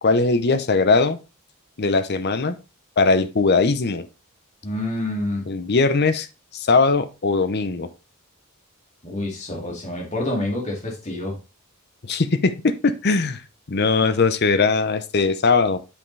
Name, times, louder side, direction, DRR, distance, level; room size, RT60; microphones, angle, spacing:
voice 1, 0.0-1.2 1.8-2.6 3.0-4.1 5.5-6.3 6.5-7.9 12.0-13.4 13.7-15.8, left 4 dB, 45° left, 11 dB, 0.7 m, -20 dB
voice 2, 4.6-5.5 9.0-11.4, left 1 dB, 30° left, -1 dB, 2.3 m, -27 dB
8.4 x 5.4 x 3.3 m, 0.28 s
head